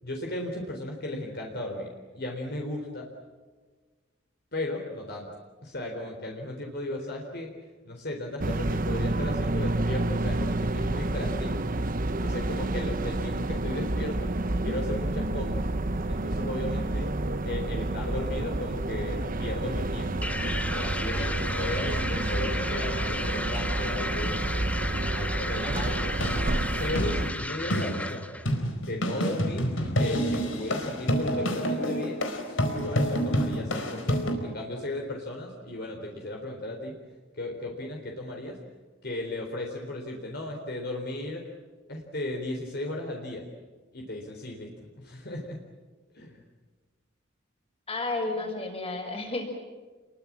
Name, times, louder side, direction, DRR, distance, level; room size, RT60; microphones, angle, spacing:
voice 1, 0.0-3.0 4.5-5.3 5.6-7.5 7.8-11.6 12.2-14.3 14.6-15.6 16.1-17.1 17.5-24.4 25.1-26.1 26.8-28.3 28.8-36.9 37.3-38.6 39.0-41.4 41.9-43.4 43.9-44.7 45.0-45.6 46.1-46.4, left 1 dB, 55° left, 1 dB, 3.9 m, -36 dB
sound 1, 8.4-27.3, right 2 dB, 45° right, 1.0 m, -29 dB
sound 2, 20.2-28.5, left 1 dB, 5° left, 0.9 m, -34 dB
sound 3, 26.0-34.4, equal, 85° left, 4.5 m, -28 dB
voice 2, 47.9-49.5, left 2 dB, 30° left, 3 dB, 5.8 m, -32 dB
29.5 x 23.0 x 7.5 m, 1.4 s
head